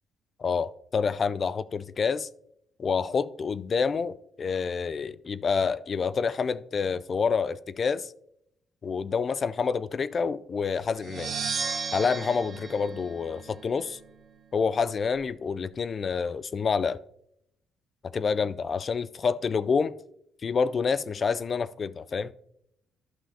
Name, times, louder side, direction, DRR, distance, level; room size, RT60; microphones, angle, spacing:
voice 1, 0.4-2.3 2.8-8.1 8.8-11.3 11.9-14.0 14.5-17.0 18.1-19.9 20.4-22.3, left 5 dB, 45° left, 0.3 m, -28 dB
sound 1, 10.9-13.8, right 5 dB, 65° right, 1.4 m, -34 dB
12.0 x 5.6 x 2.7 m
cardioid pair, 90°, 0 cm